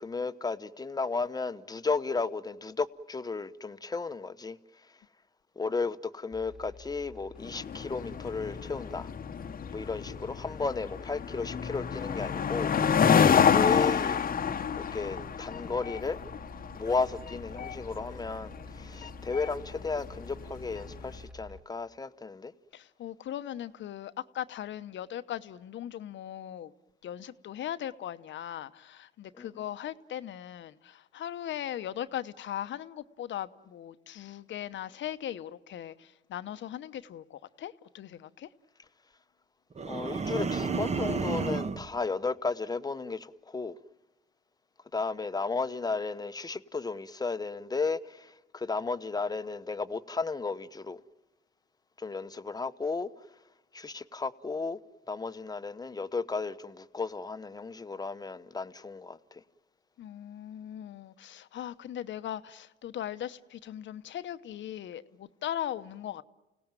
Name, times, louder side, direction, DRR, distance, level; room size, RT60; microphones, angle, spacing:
voice 1, 0.0-4.6 5.6-9.1 9.7-12.7 13.5-14.2 14.8-16.2 16.7-22.5 29.4-29.5 39.9-43.8 44.9-51.0 52.0-53.1 53.7-54.8 55.1-59.4, left 4 dB, 20° left, 0.9 m, -34 dB
sound 1, 6.3-21.6, left 3 dB, 5° right, 1.5 m, -47 dB
sound 2, 7.4-21.0, left 7 dB, 45° left, 1.0 m, -29 dB
voice 2, 22.7-26.7 27.0-38.5 60.0-66.2, left 11 dB, 70° left, 1.0 m, -39 dB
sound 3, 39.8-41.9, right 4 dB, 35° right, 1.2 m, -31 dB
29.0 x 17.5 x 9.0 m
cardioid pair, 90°, 20 cm